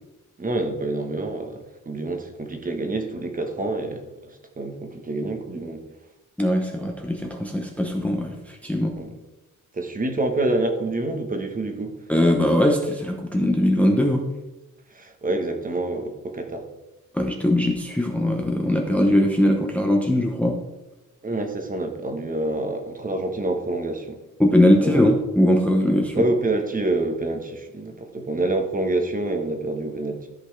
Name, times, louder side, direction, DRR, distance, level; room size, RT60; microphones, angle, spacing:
voice 1, 0.4-5.8 9.0-9.1 9.7-11.9 14.9-16.6 21.2-24.2 24.7-25.1 26.1-30.3, right 2 dB, 25° right, 4 dB, 1.0 m, -27 dB
voice 2, 6.4-9.0 12.1-14.2 17.1-20.6 24.4-26.2, left 1 dB, 5° left, 1 dB, 0.7 m, -20 dB
13.5 x 5.5 x 3.2 m, 1.0 s
wide cardioid pair, 165°, 32 cm